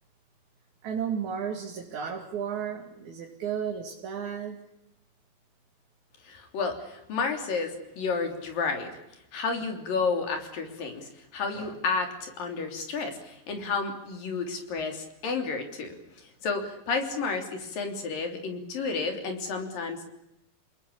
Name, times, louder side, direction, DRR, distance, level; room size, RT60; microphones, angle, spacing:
voice 1, 0.8-4.6, right 7 dB, 55° right, 1 dB, 3.6 m, -33 dB
voice 2, 6.3-9.0 9.3-16.0 16.4-20.1, left 4 dB, 65° left, 5 dB, 5.0 m, -31 dB
28.5 x 20.0 x 8.6 m, 0.83 s
omnidirectional pair, 4.3 m